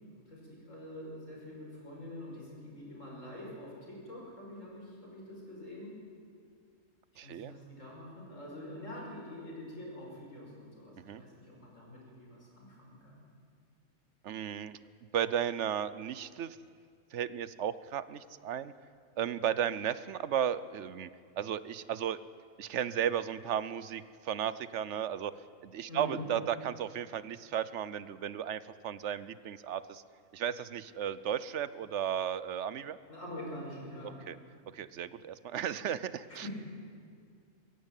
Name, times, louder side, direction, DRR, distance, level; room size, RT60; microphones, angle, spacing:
voice 1, 0.3-6.0 7.1-13.2 25.9-26.2 33.1-34.2 36.3-36.5, left 1 dB, 85° left, -2 dB, 5.7 m, -45 dB
voice 2, 7.2-7.5 11.0-11.2 14.2-14.8 15.1-16.6 17.1-18.7 19.2-21.1 21.4-22.2 22.6-30.0 30.3-33.0 34.3-34.4 34.7-36.5, right 9 dB, 70° right, 16 dB, 1.0 m, -34 dB
22.5 x 15.5 x 9.1 m, 2.2 s
omnidirectional pair, 1.3 m